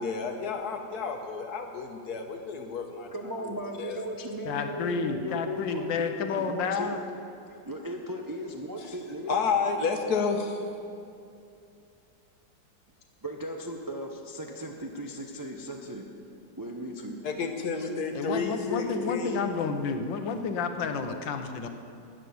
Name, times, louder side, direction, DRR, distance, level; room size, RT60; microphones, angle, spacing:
voice 1, 0.0-3.1 3.4-4.0 9.3-10.7 17.2-19.5, left 5 dB, 60° left, 5 dB, 1.5 m, -31 dB
voice 2, 3.1-7.0 7.5-9.4 13.2-16.1 16.6-17.2, equal, 30° right, 1 dB, 0.3 m, -37 dB
voice 3, 4.4-7.0 18.1-21.7, left 5 dB, 75° left, 7 dB, 1.6 m, -30 dB
14.0 x 6.8 x 9.4 m, 2.6 s
omnidirectional pair, 2.0 m